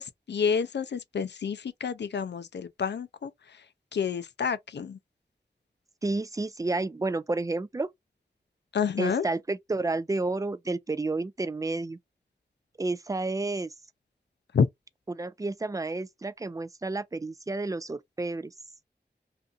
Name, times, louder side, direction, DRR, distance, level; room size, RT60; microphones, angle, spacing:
voice 1, 0.0-3.3 3.9-5.0 8.7-9.2 14.5-14.7, left 6 dB, 80° left, 0.4 m, -29 dB
voice 2, 6.0-7.9 9.0-12.0 12.8-13.7 15.1-18.5, right 2 dB, 20° right, 0.3 m, -30 dB
2.5 x 2.5 x 2.3 m
wide cardioid pair, 45°, 17 cm